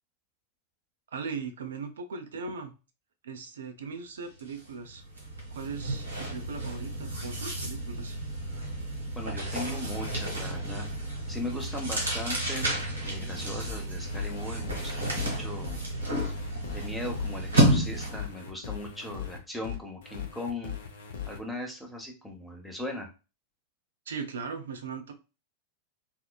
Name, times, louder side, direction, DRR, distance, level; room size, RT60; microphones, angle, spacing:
voice 1, 1.1-2.7 3.2-5.0 5.5-8.2 24.1-25.1, right 5 dB, 65° right, 7 dB, 0.4 m, -38 dB
sound 1, 4.4-4.6 4.9-18.3, right 1 dB, 80° right, 1.1 m, -31 dB
voice 2, 9.1-10.9 11.3-12.7 13.0-15.8 16.7-20.7 21.3-23.1, left 1 dB, ahead, 1 dB, 0.7 m, -38 dB
sound 2, 13.6-21.4, left 9 dB, 60° left, 0.5 m, -39 dB
3.7 x 2.1 x 2.2 m, 0.31 s
figure-of-eight pair, 90°, 0 cm